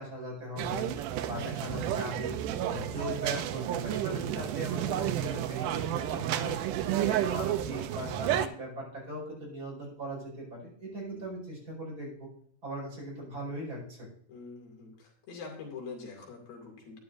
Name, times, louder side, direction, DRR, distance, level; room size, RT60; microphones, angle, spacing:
voice 1, 0.0-2.3 2.7-12.3 12.6-14.1, right 1 dB, 25° right, -4 dB, 5.1 m, -39 dB
sound 1, 0.6-8.5, right 11 dB, 80° right, 1.9 m, -31 dB
voice 2, 14.3-17.0, left 4 dB, 85° left, -1 dB, 4.3 m, -44 dB
12.0 x 10.5 x 2.6 m, 0.64 s
omnidirectional pair, 4.1 m